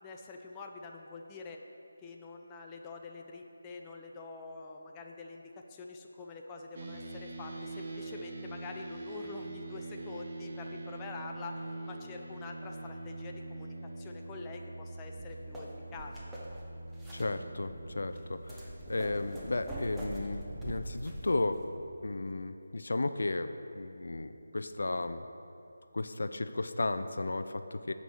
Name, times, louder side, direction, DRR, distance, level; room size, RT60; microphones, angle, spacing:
voice 1, 0.0-1.6 2.0-11.5 11.9-16.1, left 3 dB, 15° left, 1 dB, 0.5 m, -46 dB
sound 1, 6.7-21.8, right 2 dB, 45° right, 0.9 m, -44 dB
sound 2, 15.1-21.6, right 1 dB, 5° right, 1.0 m, -44 dB
voice 2, 17.1-21.6 22.0-23.5 23.7-25.2 25.9-27.9, left 2 dB, 70° left, 10 dB, 0.5 m, -34 dB
9.1 x 5.4 x 6.3 m, 2.8 s
figure-of-eight pair, 165°, 0 cm